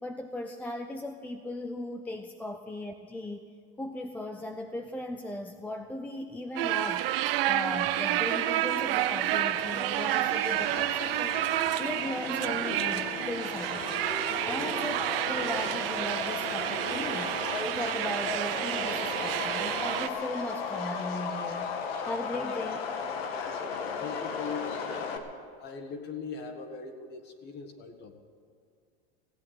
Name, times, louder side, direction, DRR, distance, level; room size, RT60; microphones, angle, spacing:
voice 1, 0.0-3.5 3.8-7.1 7.5-11.4 11.8-17.3 17.7-21.7 22.0-22.8, left 1 dB, 5° left, 6 dB, 0.4 m, -37 dB
sound 1, 6.6-20.1, right 13 dB, 70° right, 0.9 m, -30 dB
Subway metro underground, 9.0-25.2, left 6 dB, 85° left, 1.7 m, -36 dB
voice 2, 23.3-25.3 25.6-28.1, left 5 dB, 35° left, 6 dB, 1.7 m, -41 dB
16.5 x 8.5 x 9.2 m, 2.3 s
supercardioid pair, 140°, 29 cm